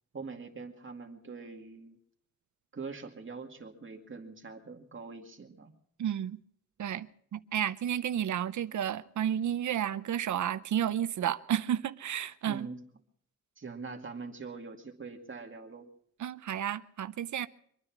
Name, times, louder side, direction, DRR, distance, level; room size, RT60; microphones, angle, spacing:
voice 1, 0.1-2.0 2.7-5.7 12.4-12.8 13.6-15.9, right 4 dB, 45° right, 2.2 m, -43 dB
voice 2, 6.0-6.4 6.8-12.7 16.2-17.5, right 10 dB, 80° right, 0.7 m, -32 dB
25.0 x 9.7 x 6.0 m
cardioid pair, 80°, 29 cm